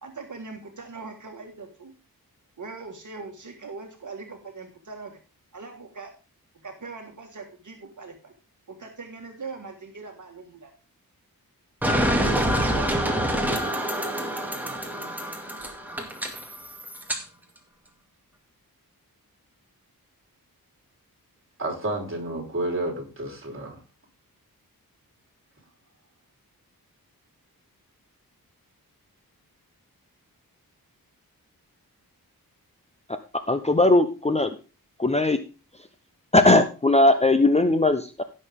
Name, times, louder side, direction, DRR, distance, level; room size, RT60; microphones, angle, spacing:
voice 1, 0.0-1.9 2.6-5.2 5.5-6.1 6.5-8.3 8.7-10.7 12.2-13.4, right 4 dB, 55° right, 2 dB, 1.8 m, -41 dB
sound 1, 11.8-17.2, equal, 5° right, 2.2 m, -26 dB
voice 2, 21.6-23.7, right 1 dB, 35° right, 1 dB, 4.1 m, -30 dB
voice 3, 33.5-34.5 35.0-35.4 36.3-38.2, left 2 dB, 20° left, 8 dB, 0.7 m, -19 dB
16.5 x 6.6 x 3.6 m, 0.33 s
wide cardioid pair, 95°, 36 cm